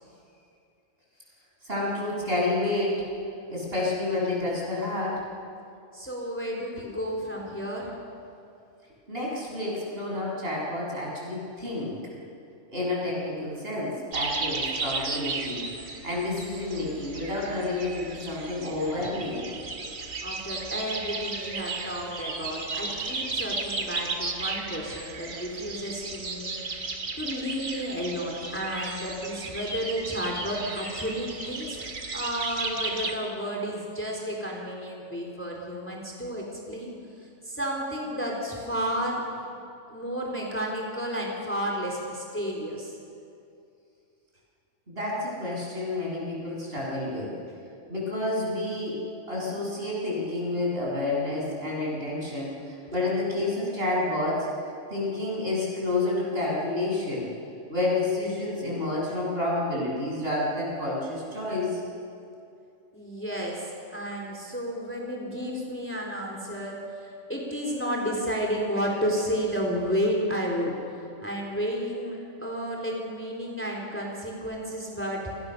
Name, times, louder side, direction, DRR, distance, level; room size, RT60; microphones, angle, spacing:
voice 1, 1.6-3.0 3.5-5.2 9.1-11.9 12.7-19.5 44.9-47.4 47.9-54.5 54.9-57.3 57.7-61.8, left 2 dB, 45° right, -4 dB, 8.4 m, -29 dB
voice 2, 5.9-8.0 20.2-26.6 27.2-31.8 32.1-39.2 39.9-43.0 51.7-51.8 52.2-52.3 53.4-53.5 62.9-63.7 63.9-70.7 71.2-75.3, equal, 10° left, -1 dB, 4.0 m, -32 dB
sound 1, 14.1-33.2, right 3 dB, 85° right, 2.5 m, -34 dB
29.5 x 26.0 x 6.9 m, 2.5 s
omnidirectional pair, 1.4 m